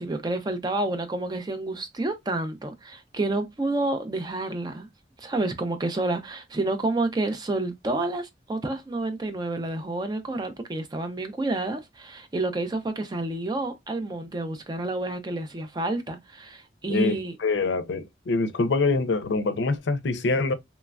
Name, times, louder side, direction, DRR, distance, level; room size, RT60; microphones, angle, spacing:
voice 1, 0.0-4.9 5.2-17.4, right 2 dB, 25° right, 0.4 m, -29 dB
voice 2, 16.9-20.5, left 3 dB, 80° left, 0.4 m, -25 dB
3.0 x 2.2 x 2.3 m
head